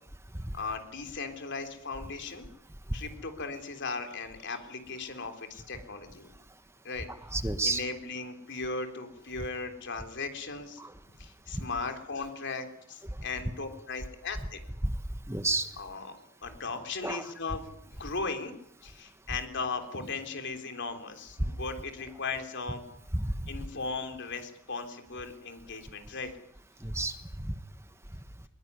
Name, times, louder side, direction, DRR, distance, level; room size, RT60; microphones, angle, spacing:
voice 1, 0.5-2.5 2.9-6.3 6.8-7.1 7.6-10.8 11.2-14.6 15.8-17.7 18.0-18.5 18.8-22.8 23.5-26.3, left 4 dB, 60° left, 7 dB, 3.7 m, -37 dB
voice 2, 7.3-7.8 10.8-10.9 15.3-15.7 17.0-17.2 23.2-23.3 26.8-27.6, right 2 dB, 15° right, 10 dB, 1.2 m, -30 dB
22.0 x 21.5 x 9.7 m, 0.74 s
head